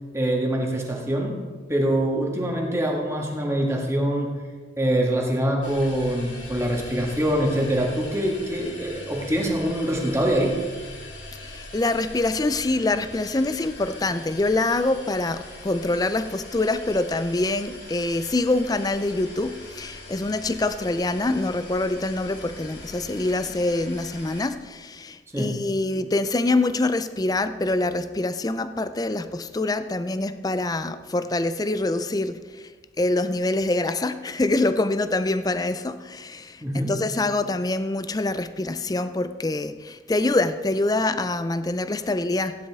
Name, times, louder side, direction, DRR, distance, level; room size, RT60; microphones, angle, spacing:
voice 1, 0.1-1.4 1.7-4.4 4.8-10.6 25.3-25.6 36.6-36.9, right 1 dB, 15° right, 1.7 m, -24 dB
sound 1, 5.6-24.5, left 2 dB, 75° left, 2.9 m, -42 dB
voice 2, 11.4-32.7 33.0-36.6 36.9-42.6, left 2 dB, 20° left, 0.4 m, -25 dB
15.5 x 10.0 x 3.6 m
head